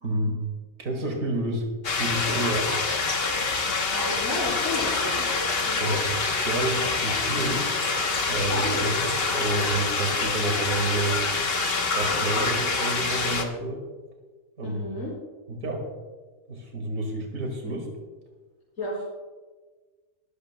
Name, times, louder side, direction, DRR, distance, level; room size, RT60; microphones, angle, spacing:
voice 1, 0.0-0.4 0.8-1.7 2.0-2.7 5.8-6.0 6.4-7.7 8.3-11.2 11.9-13.8 14.6-14.8 15.5-15.8 16.5-17.9, right 2 dB, 80° right, 1 dB, 2.5 m, -29 dB
sound 1, 1.8-13.4, left 4 dB, 50° left, 1.2 m, -26 dB
voice 2, 3.9-5.2 5.7-6.0 8.5-9.0 14.6-15.1 18.8-19.0, left 2 dB, 85° left, -9 dB, 4.4 m, -33 dB
21.0 x 13.5 x 2.2 m, 1.3 s
omnidirectional pair, 1.4 m